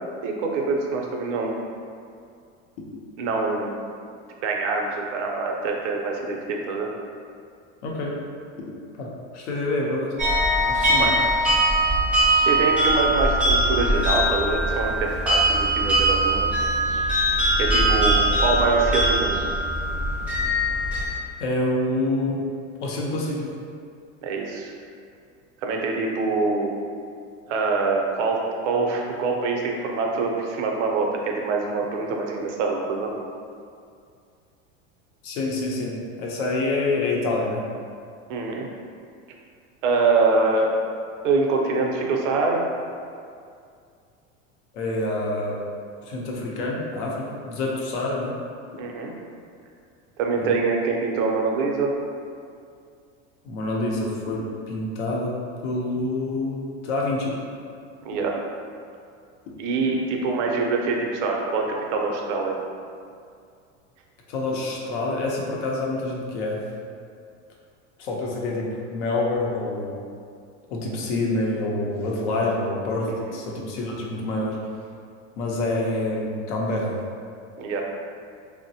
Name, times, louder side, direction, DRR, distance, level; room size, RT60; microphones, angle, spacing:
voice 1, 0.2-1.6 3.2-3.8 4.4-6.9 11.0-11.2 12.4-16.5 17.6-19.5 24.2-24.7 25.6-26.7 27.5-33.1 38.3-38.7 39.8-40.8 41.2-42.6 48.8-49.1 50.2-51.9 58.0-58.3 59.6-62.6 73.1-73.4 77.6-77.8, right 3 dB, 75° right, 1 dB, 0.6 m, -24 dB
voice 2, 7.8-8.2 9.0-10.1 10.7-11.1 21.4-22.5 22.8-23.5 35.2-37.6 44.7-45.6 46.1-48.3 50.3-50.6 53.4-55.4 55.6-57.4 64.3-66.6 68.0-70.0 70.7-74.6 75.4-77.0, left 2 dB, 75° left, -2 dB, 0.7 m, -27 dB
sound 1, 10.2-21.1, right 1 dB, 5° right, 0.5 m, -21 dB
3.0 x 2.1 x 2.7 m, 2.3 s
supercardioid pair, 130°, 36 cm